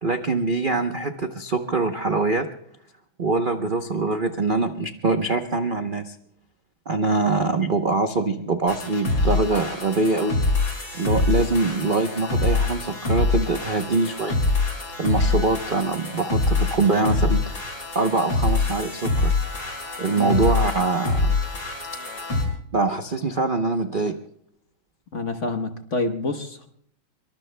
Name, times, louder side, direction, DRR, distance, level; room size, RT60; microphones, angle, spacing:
voice 1, 0.0-2.5 3.2-6.1 6.9-10.3 11.0-14.4 15.0-19.4 20.0-21.3 22.7-24.1, right 3 dB, 55° right, 6 dB, 0.5 m, -23 dB
sound 1, 8.7-22.4, left 3 dB, 65° left, 6.0 m, -25 dB
voice 2, 25.1-26.7, left 2 dB, 45° left, 6 dB, 1.1 m, -28 dB
26.0 x 24.0 x 2.2 m, 0.67 s
omnidirectional pair, 2.2 m